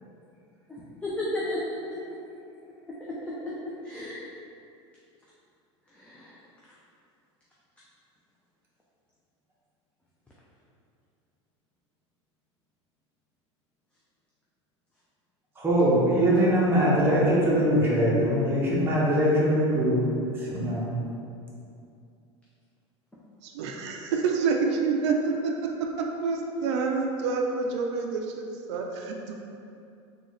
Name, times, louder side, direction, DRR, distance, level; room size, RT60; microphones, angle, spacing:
voice 1, 0.7-1.8 3.2-3.3 3.8-4.2 5.9-6.4, left 1 dB, 10° left, -8 dB, 0.6 m, -33 dB
voice 2, 15.6-20.9, equal, 15° right, -7 dB, 0.9 m, -22 dB
voice 3, 23.4-29.3, right 4 dB, 75° right, 1 dB, 0.4 m, -28 dB
3.7 x 2.4 x 3.1 m, 2.6 s
hypercardioid pair, 95°, 15 cm